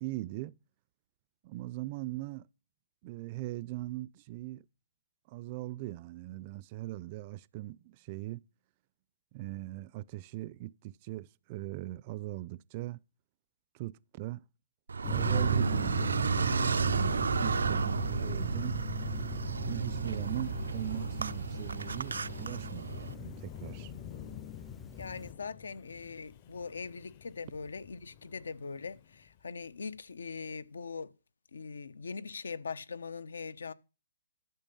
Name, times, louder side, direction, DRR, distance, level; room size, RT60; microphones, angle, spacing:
voice 1, 0.0-0.6 1.4-2.5 3.0-4.6 5.3-8.4 9.3-13.0 13.7-14.4 15.1-18.8 19.6-23.9, right 17 dB, 35° right, 0.5 m, -40 dB
Car, 14.9-23.1, right 5 dB, 90° right, 0.6 m, -31 dB
sound 1, 15.0-25.3, left 4 dB, 10° left, 0.5 m, -42 dB
Wind, 19.7-30.0, left 10 dB, 40° left, 0.8 m, -52 dB
voice 2, 24.9-31.1 31.5-33.7, left 5 dB, 80° left, 1.0 m, -41 dB
12.0 x 7.0 x 5.4 m
hypercardioid pair, 150°, 0 cm